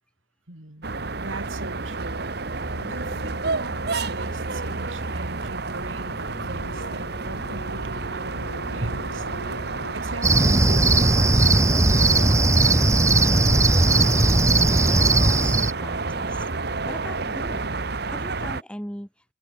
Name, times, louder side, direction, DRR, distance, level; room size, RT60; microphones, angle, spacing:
voice 1, 0.5-0.9 1.2-2.3 2.6-9.3 9.9-12.3, right 2 dB, 75° right, 3.8 m, -40 dB
sound 1, 0.8-18.6, right 3 dB, 50° right, 1.2 m, -30 dB
sound 2, 2.7-9.9, left 1 dB, 70° left, 7.5 m, -43 dB
Cricket, 10.2-15.7, right 2 dB, 15° right, 0.9 m, -18 dB
voice 2, 13.1-14.3 14.9-16.4 16.8-17.7 18.1-19.1, equal, 5° left, 5.7 m, -40 dB
head